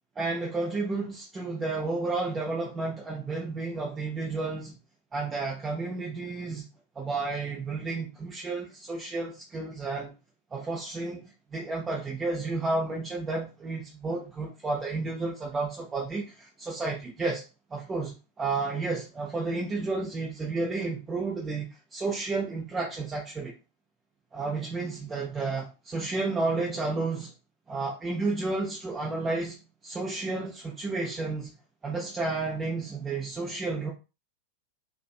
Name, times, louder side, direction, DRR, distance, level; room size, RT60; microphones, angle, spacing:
voice 1, 0.2-4.8 5.1-6.6 7.0-10.1 10.5-17.4 17.7-23.5 24.3-27.3 27.7-29.6 29.8-31.5 31.8-33.9, right 3 dB, 15° right, -3 dB, 0.5 m, -31 dB
2.5 x 2.1 x 2.4 m, 0.30 s
figure-of-eight pair, 90°, 0 cm